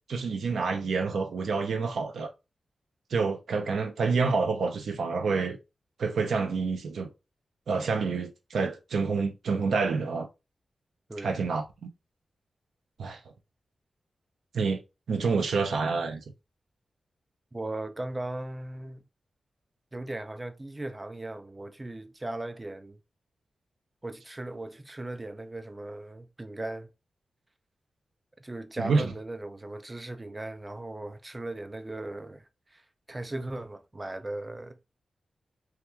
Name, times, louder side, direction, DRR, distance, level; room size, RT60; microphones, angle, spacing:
voice 1, 0.1-2.3 3.1-5.6 6.0-7.1 7.7-10.3 11.2-11.6 13.0-13.2 14.5-14.8 15.1-16.2 28.8-29.1, right 4 dB, 90° right, 0.5 m, -28 dB
voice 2, 11.1-11.4 17.5-19.0 19.9-23.0 24.0-26.9 28.4-32.8 33.1-34.8, right 2 dB, 25° right, 0.4 m, -38 dB
2.8 x 2.2 x 2.3 m
cardioid pair, 70°, 0 cm